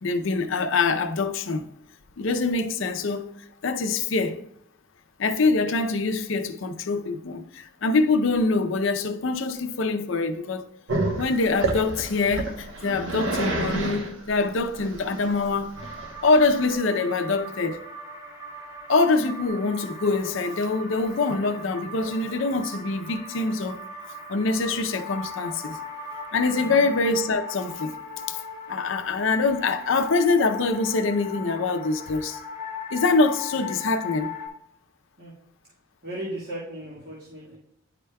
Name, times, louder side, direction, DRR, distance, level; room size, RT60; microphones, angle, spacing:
voice 1, 0.0-1.6 2.2-3.2 3.6-4.4 5.2-10.6 11.2-15.7 16.2-17.8 18.9-23.8 24.1-25.8 26.3-27.9 28.3-28.4 28.7-32.4 32.9-34.3, left 3 dB, 70° left, 0.5 m, -24 dB
Growling, 10.9-16.7, right 2 dB, 65° right, 1.0 m, -29 dB
sound 1, 15.7-34.5, left 3 dB, 15° right, 1.0 m, -39 dB
voice 2, 26.6-26.9 35.2-35.3 36.0-37.6, right 1 dB, 50° right, 1.5 m, -36 dB
10.5 x 4.9 x 2.2 m
head